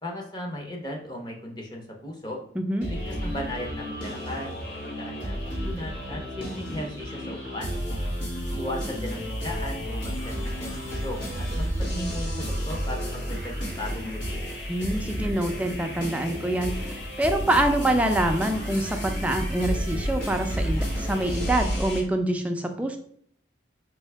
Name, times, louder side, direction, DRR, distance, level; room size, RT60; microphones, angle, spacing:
voice 1, 0.0-2.4 2.9-7.8 8.5-14.5, left 1 dB, 25° left, 1 dB, 0.7 m, -37 dB
voice 2, 2.6-2.9 14.7-23.0, right 1 dB, 5° right, 4 dB, 0.3 m, -26 dB
sound 1, 2.8-22.0, equal, 85° left, 1.7 m, -31 dB
4.5 x 2.7 x 3.3 m, 0.63 s
head